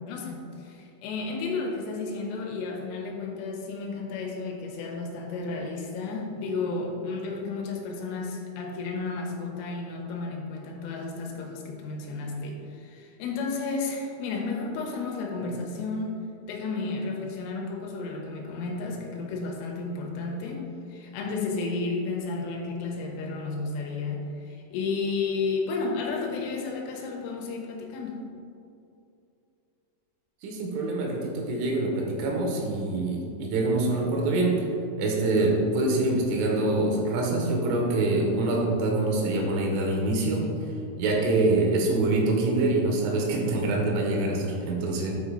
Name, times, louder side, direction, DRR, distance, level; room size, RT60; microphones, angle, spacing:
voice 1, 0.0-28.2, left 3 dB, 85° left, 0 dB, 3.4 m, -32 dB
voice 2, 30.4-34.6 35.0-40.4 41.0-45.1, right 2 dB, 85° right, 0 dB, 3.4 m, -25 dB
8.9 x 4.2 x 3.8 m, 2.6 s
omnidirectional pair, 5.7 m